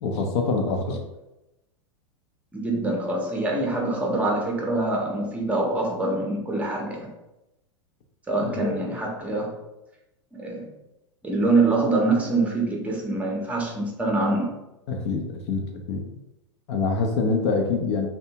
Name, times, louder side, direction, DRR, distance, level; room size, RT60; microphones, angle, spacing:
voice 1, 0.0-1.0 8.5-8.8 14.9-16.1 16.7-18.1, left 4 dB, 55° left, 3 dB, 0.5 m, -25 dB
voice 2, 2.5-7.1 8.3-9.6 10.3-10.7 11.2-14.5, right 2 dB, 10° right, -1 dB, 0.6 m, -25 dB
2.6 x 2.2 x 2.8 m, 0.93 s
hypercardioid pair, 105°, 16 cm